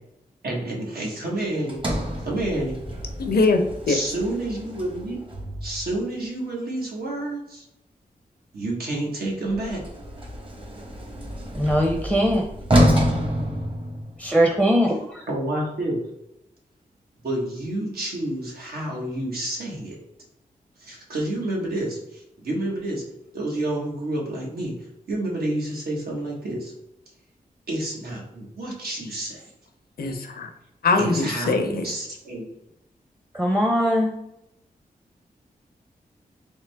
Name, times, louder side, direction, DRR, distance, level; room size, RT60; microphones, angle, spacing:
voice 1, 0.4-1.8 2.2-2.8 3.9-5.2 5.6-7.6 8.5-9.8 15.3-16.0 17.2-20.0 20.8-23.0 23.3-24.7 25.1-26.7 27.7-29.4 31.0-32.4, right 1 dB, 85° right, -2 dB, 1.3 m, -29 dB
Sliding door, 1.7-6.0 9.4-14.4, equal, 35° right, 0.9 m, -27 dB
voice 2, 3.2-4.0 30.0-30.5 30.8-31.9, left 3 dB, 80° left, 5 dB, 0.6 m, -22 dB
voice 3, 11.6-12.5 14.2-15.2 33.3-34.1, equal, 10° right, 2 dB, 0.6 m, -21 dB
3.7 x 3.2 x 3.4 m, 0.85 s
wide cardioid pair, 80°, 16 cm